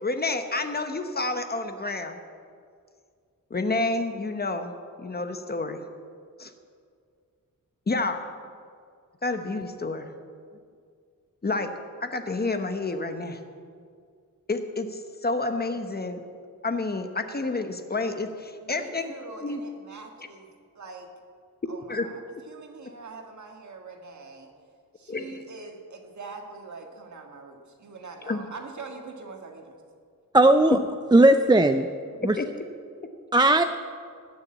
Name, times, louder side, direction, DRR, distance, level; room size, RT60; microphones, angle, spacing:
voice 1, 0.0-2.2 3.5-4.7 5.0-5.8 6.4-6.5 7.9-8.2 9.2-10.1 11.4-11.7 12.0-13.4 14.5-16.2 16.6-19.1 19.4-19.6 21.9-22.1 25.1-25.4 28.3-28.5 30.7-30.8 32.4-32.5 33.0-33.1, left 3 dB, 30° left, 7 dB, 0.9 m, -29 dB
voice 2, 18.6-20.5 20.8-21.1 21.7-24.5 25.0-29.8, right 4 dB, 60° right, 3 dB, 1.8 m, -43 dB
voice 3, 30.3-30.8 31.1-31.9 32.2-32.4 33.3-33.6, right 2 dB, 15° right, 8 dB, 0.3 m, -17 dB
19.5 x 6.9 x 8.4 m, 2.2 s
wide cardioid pair, 170°, 33 cm